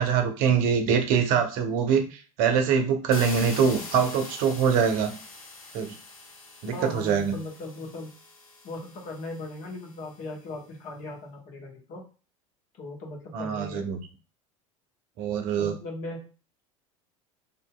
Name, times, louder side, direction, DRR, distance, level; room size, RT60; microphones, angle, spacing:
voice 1, 0.0-2.0 2.4-5.2 5.7-5.9 6.6-7.3 13.3-14.0 15.2-15.7, right 7 dB, 55° right, 6 dB, 0.6 m, -23 dB
sound 1, 3.1-9.9, left 3 dB, 90° left, 0.6 m, -43 dB
voice 2, 6.7-8.1 8.6-12.1 12.8-13.9 15.6-16.2, left 2 dB, 50° left, 0 dB, 1.0 m, -38 dB
2.6 x 2.6 x 2.2 m, 0.34 s
hypercardioid pair, 80°, 18 cm